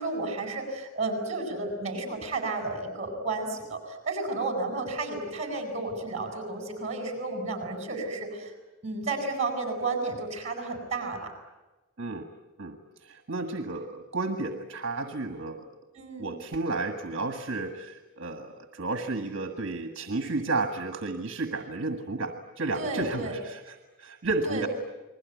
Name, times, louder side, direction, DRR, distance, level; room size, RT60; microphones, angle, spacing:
voice 1, 0.0-8.5 8.8-11.3 16.0-16.3 22.8-23.4 24.5-24.7, right 3 dB, 30° right, 4 dB, 7.4 m, -32 dB
voice 2, 12.0-12.3 12.6-15.6 16.2-24.7, right 3 dB, 60° right, 6 dB, 1.8 m, -32 dB
29.5 x 21.0 x 9.5 m, 1.1 s
head